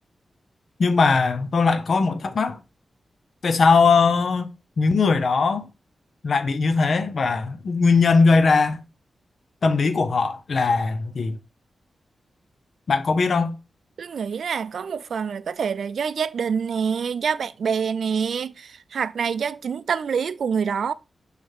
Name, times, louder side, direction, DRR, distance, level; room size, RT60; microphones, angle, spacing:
voice 1, 0.8-2.6 3.4-4.5 4.8-5.7 6.2-8.8 9.6-11.4 12.9-13.6, left 4 dB, 60° left, 0.7 m, -20 dB
voice 2, 14.0-20.9, right 6 dB, 80° right, 0.4 m, -26 dB
6.5 x 3.4 x 4.4 m
wide cardioid pair, 105°, 0 cm